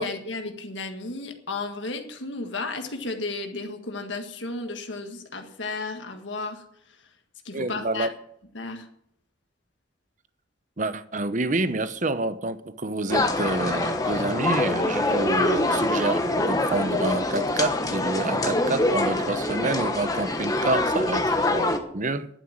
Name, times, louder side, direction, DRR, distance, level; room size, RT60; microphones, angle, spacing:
voice 1, 0.0-6.6 6.9-7.0 7.4-8.1 8.5-8.9, left 3 dB, 75° left, 1.7 m, -33 dB
voice 2, 7.5-8.1 10.8-22.3, right 2 dB, 40° right, 0.8 m, -28 dB
sound 1, 13.1-21.8, left 2 dB, 20° left, 1.2 m, -25 dB
11.0 x 9.2 x 8.8 m
head